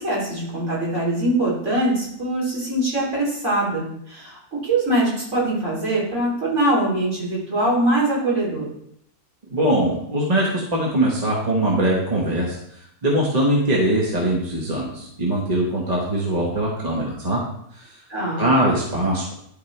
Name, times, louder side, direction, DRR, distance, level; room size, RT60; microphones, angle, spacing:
voice 1, 0.0-8.7 18.1-18.5, right 1 dB, 50° right, -6 dB, 3.8 m, -23 dB
voice 2, 9.5-12.6 13.0-17.4 17.7-18.0 18.4-19.3, right 1 dB, 30° right, -3 dB, 1.3 m, -21 dB
12.0 x 4.5 x 3.3 m, 0.73 s
omnidirectional pair, 1.6 m